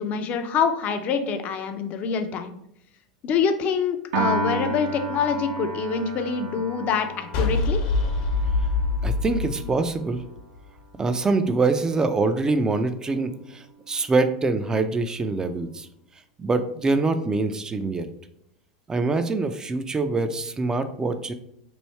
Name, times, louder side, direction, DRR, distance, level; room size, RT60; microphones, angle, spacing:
voice 1, 0.0-2.5 3.2-7.8, left 6 dB, 40° left, 7 dB, 0.5 m, -25 dB
Piano, 4.1-10.5, right 2 dB, 70° right, 0.7 m, -32 dB
sound 1, 7.3-10.6, left 3 dB, 60° left, 0.9 m, -24 dB
voice 2, 9.0-10.2 10.9-15.9 16.4-18.1 18.9-21.3, right 3 dB, 20° right, 9 dB, 0.4 m, -24 dB
3.1 x 2.7 x 4.2 m, 0.76 s
hypercardioid pair, 90°, 4 cm